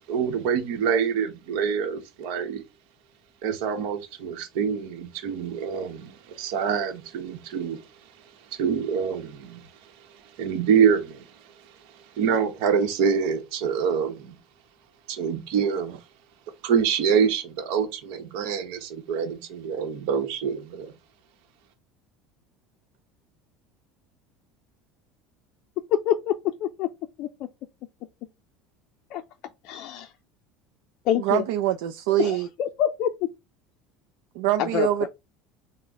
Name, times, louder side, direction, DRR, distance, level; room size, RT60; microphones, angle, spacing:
voice 1, 0.0-2.6 3.4-7.8 8.5-9.6 10.4-11.3 12.1-14.4 15.1-16.0 16.6-20.9, right 7 dB, 70° right, 0.9 m, -25 dB
voice 2, 25.9-26.3 26.6-26.9 27.2-27.3 29.1-29.2 29.6-30.1 31.1-31.4 32.2-33.3 34.6-35.1, left 10 dB, 50° left, 0.4 m, -26 dB
voice 3, 31.2-32.5 34.4-35.1, right 13 dB, 90° right, 0.4 m, -24 dB
3.9 x 2.1 x 4.5 m
cardioid pair, 165°, 0 cm